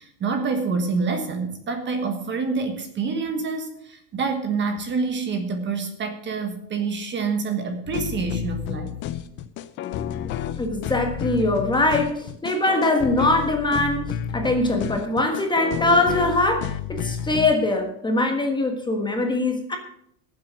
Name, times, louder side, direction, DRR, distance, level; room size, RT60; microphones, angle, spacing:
voice 1, 0.0-8.9, right 4 dB, 25° right, 6 dB, 1.4 m, -27 dB
sound 1, 7.9-17.6, left 10 dB, 25° left, 0.4 m, -30 dB
voice 2, 10.6-19.8, left 2 dB, 10° left, 3 dB, 1.4 m, -22 dB
15.0 x 7.7 x 6.2 m, 0.70 s
supercardioid pair, 155°, 47 cm